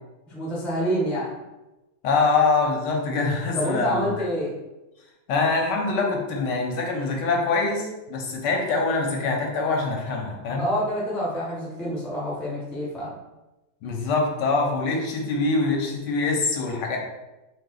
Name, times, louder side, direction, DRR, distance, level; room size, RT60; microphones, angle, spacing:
voice 1, 0.3-1.3 3.6-4.5 10.6-13.1, equal, ahead, -6 dB, 0.4 m, -27 dB
voice 2, 2.0-4.1 5.3-10.6 13.8-17.0, left 3 dB, 75° left, 1 dB, 1.3 m, -24 dB
3.0 x 2.8 x 3.8 m, 1.0 s
omnidirectional pair, 1.9 m